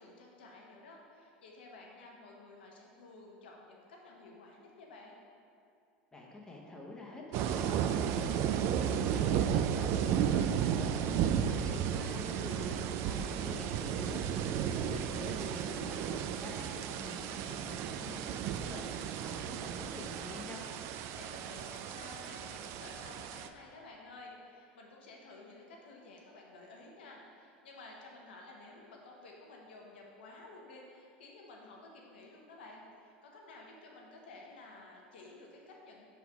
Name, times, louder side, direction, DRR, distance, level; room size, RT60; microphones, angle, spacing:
voice 1, 0.0-5.2 14.4-15.2 21.1-36.1, left 2 dB, 85° left, -1 dB, 1.1 m, -53 dB
voice 2, 6.1-20.6, left 2 dB, 10° left, -3 dB, 0.9 m, -47 dB
sound 1, 7.3-23.5, right 8 dB, 55° right, 0.3 m, -33 dB
5.6 x 4.1 x 4.7 m, 2.7 s
hypercardioid pair, 95°, 5 cm